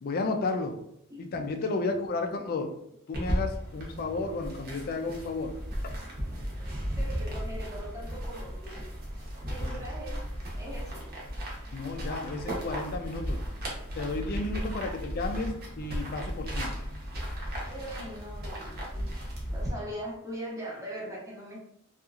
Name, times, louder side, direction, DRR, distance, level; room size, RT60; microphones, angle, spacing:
voice 1, 0.0-0.7 1.2-2.7 3.1-5.5 9.6-9.8 11.7-13.4 14.0-16.7, left 3 dB, 45° left, 5 dB, 0.3 m, -32 dB
voice 2, 1.1-1.8 2.4-2.5 6.2-6.5 7.0-8.8 9.1-10.2 10.5-11.1 14.7-15.0 17.7-19.1 19.5-21.6, equal, 15° right, -4 dB, 0.7 m, -41 dB
sound 1, 3.1-19.7, equal, 45° right, 0.8 m, -35 dB
2.8 x 2.4 x 2.4 m, 0.77 s
head